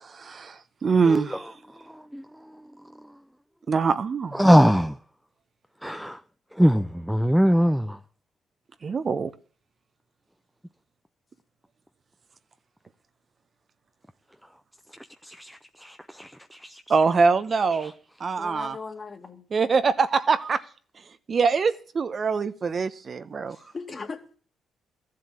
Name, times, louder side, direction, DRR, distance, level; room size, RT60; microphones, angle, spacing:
voice 1, 0.0-1.5 3.7-4.4 8.8-9.3 16.9-17.9 18.2-18.8 19.5-20.6 21.3-23.6, right 5 dB, 45° right, 0.9 m, -24 dB
voice 2, 1.0-1.4 2.1-2.2 4.3-4.9 5.8-6.2 6.6-8.0 15.2-16.8, equal, ahead, 0.6 m, -22 dB
voice 3, 18.4-19.4 22.3-22.4 23.5-24.4, left 4 dB, 35° left, 2.3 m, -38 dB
13.5 x 7.7 x 8.6 m
cardioid pair, 90°, 0 cm